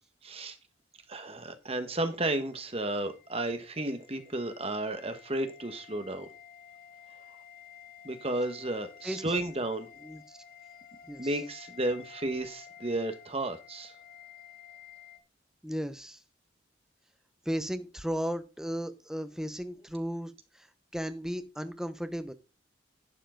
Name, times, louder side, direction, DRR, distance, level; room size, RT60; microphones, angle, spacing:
voice 1, 0.2-0.6 1.1-6.3 8.0-9.9 11.2-13.9, right 2 dB, 30° right, 1.3 m, -33 dB
sound 1, 2.1-15.2, left 8 dB, 50° left, 1.6 m, -52 dB
voice 2, 10.0-10.4 11.1-11.3 15.6-16.2 17.4-20.7 20.9-22.3, equal, 5° right, 0.8 m, -35 dB
11.5 x 7.4 x 3.8 m
head